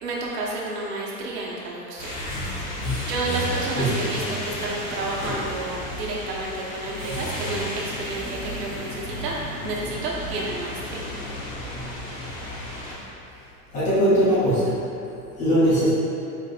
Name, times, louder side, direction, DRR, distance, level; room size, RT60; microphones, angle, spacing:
voice 1, 0.0-2.1 3.1-9.4 9.6-11.0, right 2 dB, 85° right, -4 dB, 1.2 m, -30 dB
sound 1, 2.0-12.9, equal, 35° left, 1.1 m, -32 dB
voice 2, 12.7-13.1 13.7-14.8 15.2-15.9, equal, 15° left, -10 dB, 0.7 m, -21 dB
4.5 x 4.4 x 2.5 m, 2.7 s
supercardioid pair, 170°, 47 cm